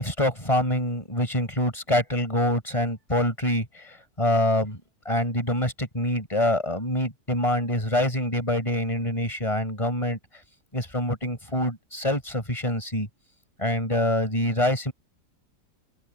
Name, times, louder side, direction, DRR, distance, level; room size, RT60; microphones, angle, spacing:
voice 1, 0.0-4.8 5.1-10.2 10.7-13.1 13.6-14.9, left 1 dB, 20° left, 5.8 m, -25 dB
omnidirectional pair, 1.8 m